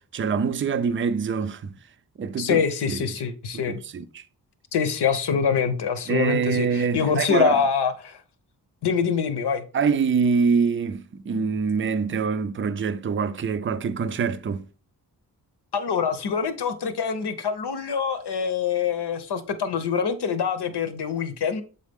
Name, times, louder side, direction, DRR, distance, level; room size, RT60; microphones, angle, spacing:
voice 1, 0.0-1.7 2.2-3.0 3.5-4.2 6.1-7.6 9.7-14.6, right 5 dB, 30° right, 0.4 m, -25 dB
voice 2, 2.4-3.8 4.7-8.2 8.8-9.6 15.7-21.6, left 6 dB, 80° left, 0.9 m, -25 dB
7.2 x 4.0 x 3.5 m
wide cardioid pair, 115°, 40 cm